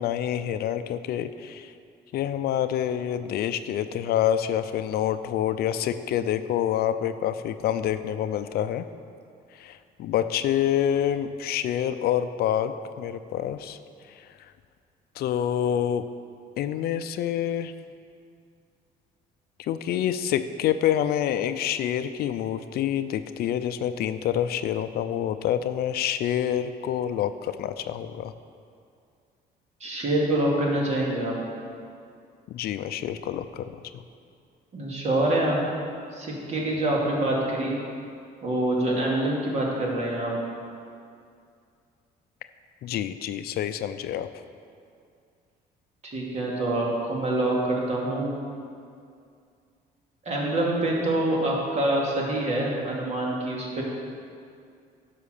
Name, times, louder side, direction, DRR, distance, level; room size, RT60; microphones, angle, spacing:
voice 1, 0.0-1.7 2.1-8.8 9.6-13.8 14.2-14.3 15.2-16.1 16.6-17.7 19.6-28.3 32.5-33.8 42.8-44.3, left 10 dB, 65° left, 11 dB, 0.5 m, -27 dB
voice 2, 29.8-31.3 34.7-35.6 36.1-37.7 38.4-40.3 46.0-48.3 50.2-53.8, right 1 dB, 40° right, -3 dB, 2.6 m, -25 dB
11.0 x 5.9 x 6.6 m, 2.3 s
cardioid pair, 110°, 17 cm